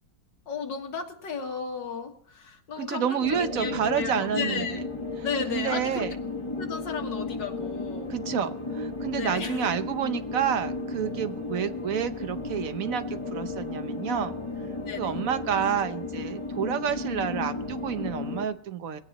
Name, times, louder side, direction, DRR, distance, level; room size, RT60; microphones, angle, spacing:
voice 1, 0.5-4.8 5.2-6.1 6.6-8.1 9.2-9.7 14.9-15.2, left 5 dB, 75° left, 3 dB, 2.4 m, -34 dB
voice 2, 2.8-4.8 5.5-6.1 8.1-14.3 15.0-19.0, right 8 dB, 55° right, 11 dB, 1.2 m, -29 dB
sound 1, 3.2-18.5, left 3 dB, 20° left, 1.1 m, -34 dB
21.0 x 17.0 x 3.0 m, 0.66 s
omnidirectional pair, 1.9 m